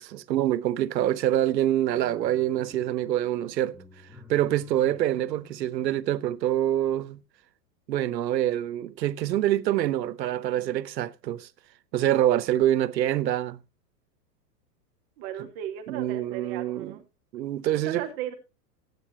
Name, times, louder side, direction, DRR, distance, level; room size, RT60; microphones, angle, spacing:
voice 1, 0.0-3.8 4.3-7.2 7.9-11.5 11.9-13.6 15.4-15.5 15.9-17.0 17.3-18.1, right 12 dB, 90° right, 1.0 m, -26 dB
sound 1, 1.9-7.2, left 1 dB, ahead, 7.4 m, -53 dB
voice 2, 15.2-17.0 17.7-18.3, right 10 dB, 40° right, 1.6 m, -36 dB
14.5 x 9.6 x 2.9 m
supercardioid pair, 150°, 49 cm